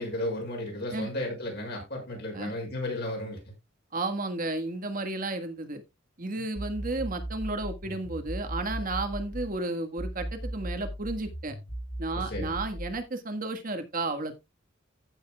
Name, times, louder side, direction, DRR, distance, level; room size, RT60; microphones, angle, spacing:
voice 1, 0.0-3.5 12.1-12.6, left 1 dB, 55° left, 5.9 m, -34 dB
voice 2, 3.9-5.8 6.2-11.6 12.0-14.3, right 2 dB, 45° right, 1.5 m, -33 dB
sound 1, 6.6-9.6 10.0-13.0, equal, 40° left, 3.2 m, -37 dB
15.0 x 6.9 x 2.3 m
head